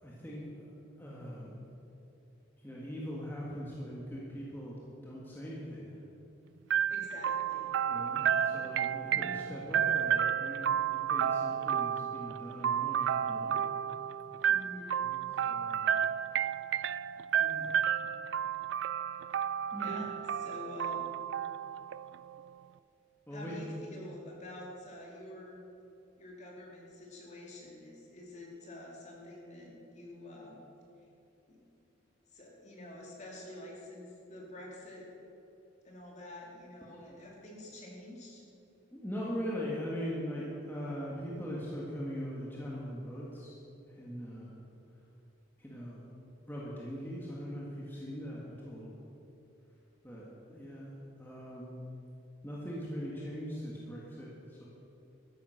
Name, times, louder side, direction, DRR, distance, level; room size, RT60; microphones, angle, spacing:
voice 1, 0.0-1.6 2.6-6.0 7.9-13.6 15.0-16.0 17.4-17.8 19.7-19.9 23.3-23.7 37.0-37.2 38.9-43.6 43.9-44.5 45.6-46.0 46.5-49.0 50.0-51.8 52.4-54.7, equal, 10° left, -6 dB, 1.8 m, -41 dB
sound 1, 6.7-22.5, right 9 dB, 70° right, 0.3 m, -32 dB
voice 2, 6.9-7.7 8.3-8.7 9.0-9.6 14.5-15.0 19.7-20.1 20.4-21.2 23.3-25.6 26.2-30.7 31.5-31.6 32.3-35.1 35.8-38.4, left 1 dB, 35° left, -2 dB, 2.7 m, -48 dB
13.0 x 10.5 x 6.5 m, 2.9 s
head